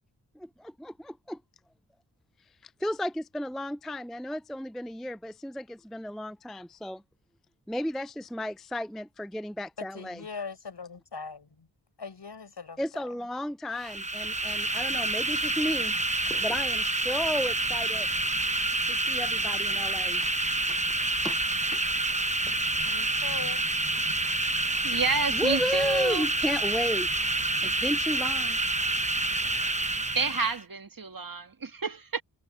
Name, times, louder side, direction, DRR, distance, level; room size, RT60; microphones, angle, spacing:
voice 1, 0.4-1.4 2.6-7.0 7.7-10.2 12.8-15.9 16.3-18.1 18.8-20.3 20.7-20.8 21.2-22.2 25.3-27.1 27.6-28.6, equal, ahead, 0.4 m, -33 dB
voice 2, 9.8-11.7 12.0-13.1 22.8-23.7, left 5 dB, 70° left, 4.8 m, -41 dB
sound 1, 13.7-30.6, right 2 dB, 15° right, 1.0 m, -28 dB
voice 3, 24.8-26.2 30.1-32.2, right 4 dB, 50° right, 1.7 m, -30 dB
wide cardioid pair, 55°, 42 cm